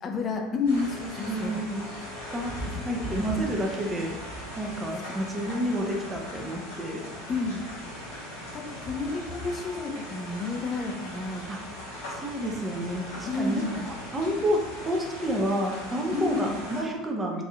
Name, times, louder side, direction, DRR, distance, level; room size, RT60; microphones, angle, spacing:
voice 1, 0.0-1.6 2.1-2.3 2.8-3.1 7.3-7.7 8.1-11.5 13.3-13.9 16.1-16.6, left 3 dB, 35° left, 3 dB, 0.5 m, -31 dB
sound 1, 0.7-16.8, equal, 75° left, 1.3 m, -39 dB
voice 2, 1.2-1.9 2.3-2.5 2.8-4.2 4.6-7.1 11.5-11.6 12.1-17.5, equal, 20° right, 0 dB, 0.6 m, -30 dB
4.0 x 2.6 x 2.4 m, 1.0 s
figure-of-eight pair, 70°, 0 cm